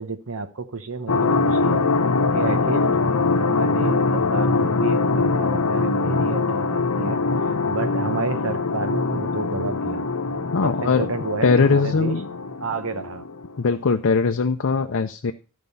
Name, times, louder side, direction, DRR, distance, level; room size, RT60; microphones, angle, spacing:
voice 1, 0.0-1.9 2.3-10.0 10.6-12.2 12.6-13.2, right 3 dB, 65° right, 1.0 m, -31 dB
sound 1, 1.1-13.6, left 3 dB, 80° left, 0.9 m, -23 dB
voice 2, 10.5-11.1 11.4-12.3 13.6-15.3, left 4 dB, 60° left, 0.6 m, -20 dB
12.5 x 5.2 x 5.5 m
head